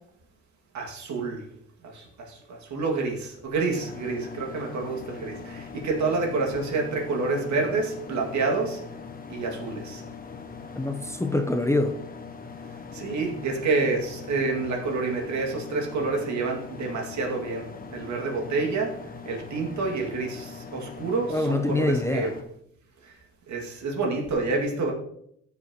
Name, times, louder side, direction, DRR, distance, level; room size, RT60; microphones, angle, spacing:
voice 1, 0.7-1.4 1.9-8.8 9.3-10.0 12.9-18.9 19.3-22.3 23.5-24.9, right 3 dB, 70° right, 0 dB, 2.3 m, -28 dB
sound 1, 3.7-22.4, left 5 dB, 30° left, 1.2 m, -41 dB
voice 2, 10.8-12.0 21.3-22.3, left 2 dB, 10° left, 8 dB, 0.6 m, -25 dB
14.0 x 6.0 x 3.0 m, 0.72 s
cardioid pair, 90°, 30 cm